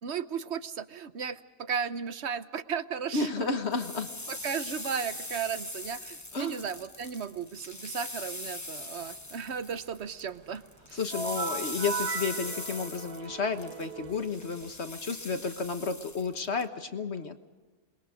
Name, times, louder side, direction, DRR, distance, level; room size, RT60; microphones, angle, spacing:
voice 1, 0.0-3.5 4.3-10.6 10.9-11.0, right 7 dB, 50° right, 12 dB, 1.0 m, -35 dB
voice 2, 3.1-4.1 6.3-6.6 10.9-17.4, left 4 dB, 45° left, 8 dB, 1.5 m, -32 dB
sound 1, 3.5-10.3 10.5-16.6, left 2 dB, 15° left, 1.0 m, -41 dB
sound 2, 11.1-14.7, right 5 dB, 75° right, 2.0 m, -37 dB
27.5 x 22.0 x 5.1 m, 1.3 s
omnidirectional pair, 1.7 m